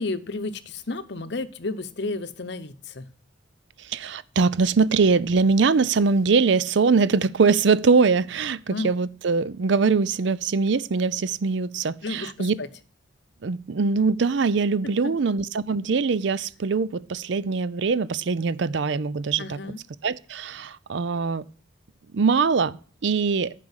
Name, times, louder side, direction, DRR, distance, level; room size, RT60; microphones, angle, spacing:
voice 1, 0.0-3.1 8.7-8.9 12.0-12.7 14.8-15.1 19.4-19.8, left 3 dB, 60° left, 0.8 m, -32 dB
voice 2, 3.9-12.5 13.4-19.6 20.0-21.4 22.1-23.5, right 4 dB, 60° right, 0.5 m, -22 dB
10.5 x 5.0 x 8.1 m
head